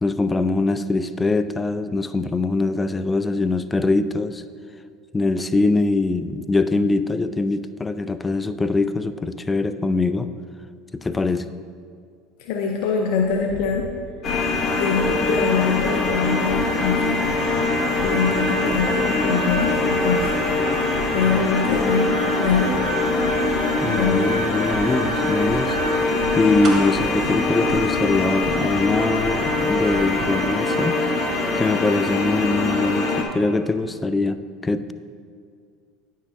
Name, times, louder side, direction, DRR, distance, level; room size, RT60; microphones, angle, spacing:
voice 1, 0.0-4.4 5.1-10.3 10.9-11.5 23.8-25.8 26.4-31.0 31.5-34.9, left 3 dB, 15° left, 12 dB, 0.3 m, -22 dB
voice 2, 12.4-13.9 14.7-17.2 18.0-20.3 21.1-22.8 23.8-24.2, left 5 dB, 70° left, 2 dB, 0.6 m, -23 dB
sound 1, 13.2-30.5, left 1 dB, 65° right, 1.5 m, -37 dB
sound 2, 14.2-33.2, left 2 dB, 40° left, 1.0 m, -23 dB
sound 3, 26.6-28.7 29.0-29.1, right 3 dB, 45° right, 1.0 m, -34 dB
9.7 x 6.4 x 2.6 m, 2.2 s
hypercardioid pair, 90°, 0 cm